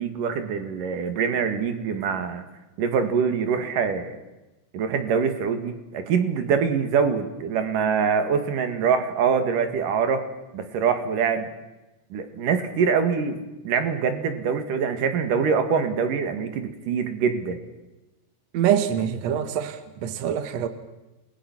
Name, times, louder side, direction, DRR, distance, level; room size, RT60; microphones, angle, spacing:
voice 1, 0.0-2.4 2.8-4.2 4.7-10.2 10.5-11.5 12.1-13.4 13.6-17.6, right 6 dB, 55° right, 8 dB, 3.0 m, -24 dB
voice 2, 18.5-20.7, right 9 dB, 80° right, 10 dB, 1.5 m, -25 dB
29.5 x 21.5 x 6.1 m, 1.0 s
omnidirectional pair, 5.5 m